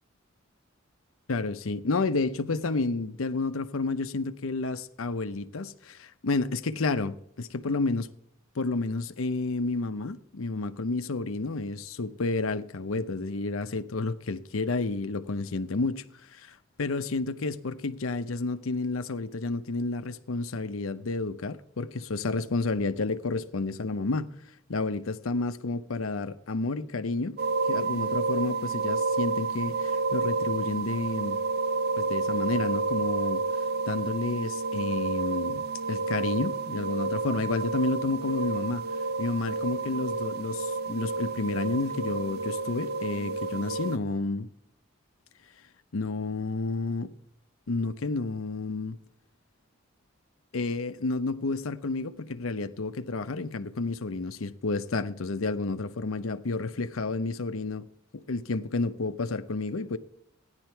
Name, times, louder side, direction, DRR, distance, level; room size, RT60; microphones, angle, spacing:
voice 1, 1.3-8.1 8.5-24.3 24.7-27.4 27.7-31.4 32.0-33.4 33.9-38.8 39.2-44.5 45.9-47.1 47.7-49.0 50.5-57.9 58.1-60.0, left 3 dB, 85° left, 0.7 m, -30 dB
sound 1, 27.4-44.0, right 4 dB, 50° right, 0.5 m, -30 dB
15.0 x 10.5 x 4.5 m
head